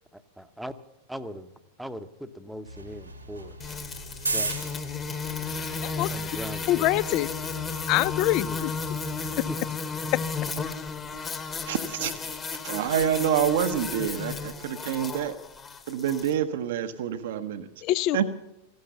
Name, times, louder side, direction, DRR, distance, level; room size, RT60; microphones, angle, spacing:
voice 1, 0.1-0.7 1.1-1.5 1.8-3.6 4.3-4.7 6.1-6.9 8.4-8.7 9.5-9.6 10.1-10.2, equal, ahead, 11 dB, 0.8 m, -39 dB
sound 1, 2.6-9.5, right 2 dB, 85° right, 1.8 m, -37 dB
sound 2, 3.6-16.3, left 5 dB, 25° left, 1.3 m, -34 dB
voice 2, 6.7-7.3 7.9-8.7 10.1-10.2 17.8-18.4, left 16 dB, 40° left, 20 dB, 0.4 m, -25 dB
voice 3, 11.7-12.3 12.6-15.4 15.9-17.7 18.1-18.3, right 9 dB, 55° right, 10 dB, 0.8 m, -27 dB
15.0 x 12.0 x 7.0 m, 0.89 s
figure-of-eight pair, 90°, 0 cm